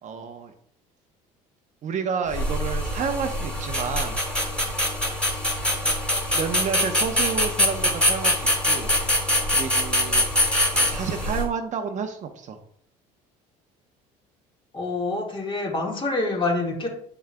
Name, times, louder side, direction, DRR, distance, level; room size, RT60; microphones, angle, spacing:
voice 1, 0.0-0.5 1.8-4.2 5.6-5.9 6.3-8.9 9.5-10.3 10.7-12.6, right 6 dB, 50° right, 6 dB, 0.8 m, -30 dB
sound 1, 2.3-11.5, left 1 dB, 5° left, 2.0 m, -24 dB
voice 2, 14.7-16.9, left 3 dB, 30° left, 1 dB, 1.7 m, -26 dB
8.1 x 5.9 x 2.2 m, 0.63 s
supercardioid pair, 90°, 16 cm